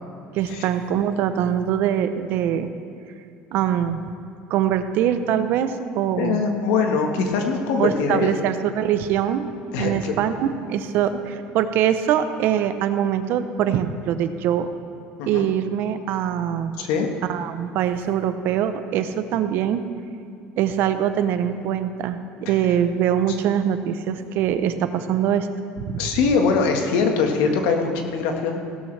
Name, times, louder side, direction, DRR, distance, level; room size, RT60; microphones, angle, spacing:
voice 1, 0.3-2.7 3.5-4.0 4.5-6.4 7.8-9.5 9.8-14.7 15.3-16.7 17.3-19.8 20.6-25.5 25.8-26.0, right 9 dB, 60° right, 10 dB, 0.7 m, -23 dB
voice 2, 6.2-8.4 9.7-10.2 15.2-15.5 16.8-17.1 22.4-22.6 26.0-28.6, left 5 dB, 80° left, 4 dB, 1.5 m, -22 dB
16.5 x 12.5 x 3.3 m, 2.5 s
cardioid pair, 135°, 4 cm